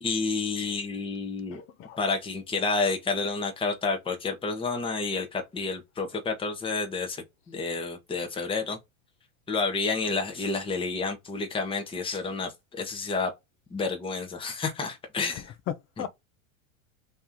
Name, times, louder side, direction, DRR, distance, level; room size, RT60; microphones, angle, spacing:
voice 1, 0.0-1.6 2.0-8.8 9.5-13.3 13.7-15.5, left 4 dB, 15° left, 1.1 m, -30 dB
voice 2, 1.5-2.0 15.3-16.1, left 10 dB, 30° left, 0.6 m, -37 dB
3.2 x 3.0 x 3.7 m
hypercardioid pair, 120°, 41 cm